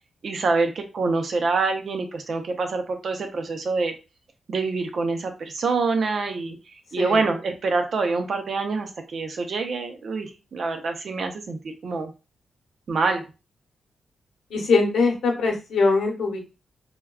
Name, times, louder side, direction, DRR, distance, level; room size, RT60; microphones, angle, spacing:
voice 1, 0.2-3.9 4.5-6.6 6.9-12.1 12.9-13.2, right 4 dB, 55° right, 6 dB, 0.5 m, -26 dB
voice 2, 14.5-16.4, left 4 dB, 90° left, 0 dB, 0.9 m, -22 dB
3.4 x 2.2 x 2.2 m, 0.30 s
wide cardioid pair, 120°, 0 cm